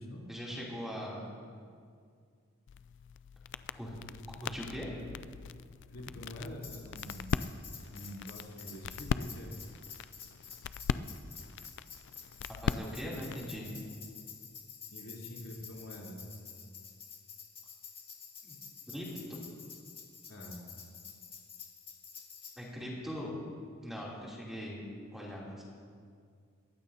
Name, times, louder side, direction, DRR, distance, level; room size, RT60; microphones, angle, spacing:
voice 1, 0.3-1.3 3.7-4.0 4.4-4.9 12.6-13.7 18.4-18.5 18.9-19.4 22.6-23.3 23.8-24.8 25.1-25.6, equal, ahead, -6 dB, 3.0 m, -41 dB
sound 1, 2.7-13.5, left 6 dB, 60° left, 0.3 m, -40 dB
voice 2, 5.9-7.5 7.9-9.6 14.9-16.3 20.3-20.6, left 1 dB, 80° left, -4 dB, 3.4 m, -45 dB
Tambourine, 6.6-22.6, left 6 dB, 30° left, 1.9 m, -49 dB
21.5 x 15.5 x 2.8 m, 2.1 s
head